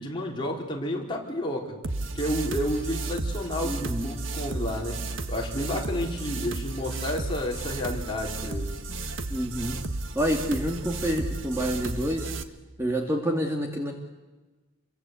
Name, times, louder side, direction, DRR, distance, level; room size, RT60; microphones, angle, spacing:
voice 1, 0.0-1.8 2.1-8.8, left 1 dB, 25° left, -2 dB, 4.7 m, -31 dB
sound 1, 1.8-12.4, right 2 dB, 70° right, 1.5 m, -33 dB
voice 2, 3.6-4.2 9.3-9.8 10.1-12.3 12.8-13.9, equal, 15° right, 2 dB, 2.2 m, -28 dB
28.5 x 23.5 x 8.5 m, 1.2 s
head